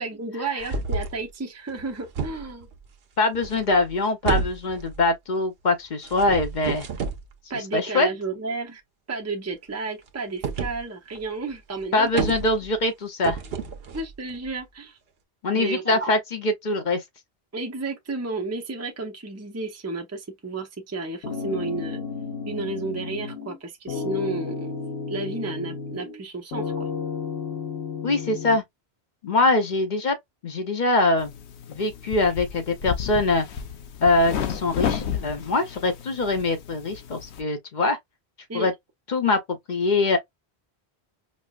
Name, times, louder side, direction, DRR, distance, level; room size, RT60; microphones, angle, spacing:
voice 1, 0.0-2.7 7.5-8.8 9.1-12.2 13.9-15.0 15.5-16.1 17.5-22.0 22.5-24.7 25.1-26.9 38.5-38.7, right 3 dB, 15° right, 0.6 m, -32 dB
sound 1, 0.6-1.2 1.7-2.8 3.3-3.9 4.2-5.0 6.0-7.3 10.4-10.8 11.1-11.2 11.5-11.6 11.8-12.8 13.2-14.5, right 5 dB, 70° right, 0.9 m, -30 dB
voice 2, 3.2-6.9 7.7-8.1 11.9-13.4 15.4-17.0 28.0-28.6 29.2-30.2 30.4-31.3 31.7-33.5 34.0-38.0 38.5-38.7 39.1-40.2, left 2 dB, 50° left, 0.8 m, -23 dB
sound 2, 21.2-23.6 23.9-26.2 26.5-28.6, left 5 dB, 70° left, 1.2 m, -32 dB
sound 3, 31.2-37.4, left 8 dB, 85° left, 0.9 m, -32 dB
5.3 x 2.0 x 2.4 m
omnidirectional pair, 1.1 m